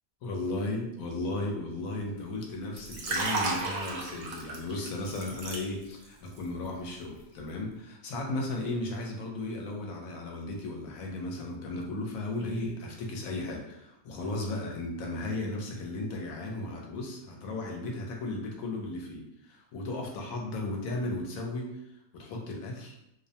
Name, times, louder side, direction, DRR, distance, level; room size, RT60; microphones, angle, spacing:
voice 1, 0.2-21.8 22.1-23.0, left 2 dB, 75° left, 1 dB, 1.0 m, -35 dB
Liquid, 2.7-6.1 6.4-6.7, right 3 dB, 65° right, 0.7 m, -33 dB
2.5 x 2.1 x 2.7 m, 0.84 s
omnidirectional pair, 1.5 m